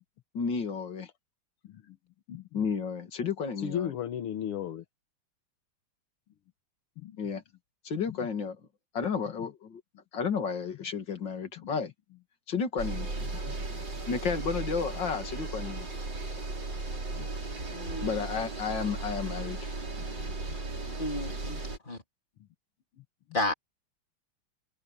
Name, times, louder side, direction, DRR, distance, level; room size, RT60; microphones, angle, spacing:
voice 1, 0.3-1.1 2.5-3.9 7.2-7.4 7.8-8.6 8.9-9.8 10.1-11.9 12.5-13.1 14.1-15.9 18.0-19.7 20.0-20.1, left 5 dB, 55° left, 3.0 m, -32 dB
voice 2, 1.6-2.0 2.3-2.6 3.6-4.8 7.0-7.2 11.6-11.7 13.4-13.6 17.1-17.3 20.1-20.3, left 10 dB, 90° left, 2.1 m, -36 dB
sound 1, 12.8-21.8, right 2 dB, 55° right, 5.9 m, -36 dB
voice 3, 17.7-18.3 21.0-22.0 23.3-23.5, left 2 dB, 20° left, 3.5 m, -33 dB
open air
omnidirectional pair, 2.4 m